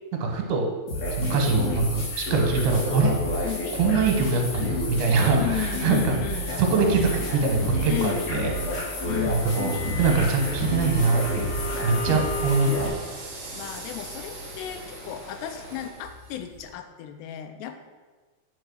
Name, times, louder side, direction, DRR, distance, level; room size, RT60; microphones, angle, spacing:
voice 1, 0.2-0.7 1.1-3.4 3.7-6.2 6.6-8.5 9.3-11.5 11.8-12.9, right 4 dB, 75° right, 2 dB, 3.4 m, -23 dB
sound 1, 0.9-12.9, left 1 dB, 60° left, 4.3 m, -29 dB
sound 2, 1.2-16.7, right 4 dB, 50° right, 3.0 m, -47 dB
voice 2, 5.4-6.6 7.9-8.3 9.1-9.6 13.5-17.8, left 12 dB, 85° left, 8 dB, 3.0 m, -34 dB
Water, 6.6-15.9, equal, 5° left, 1.1 m, -44 dB
8.6 x 6.2 x 6.4 m, 1.4 s
omnidirectional pair, 4.7 m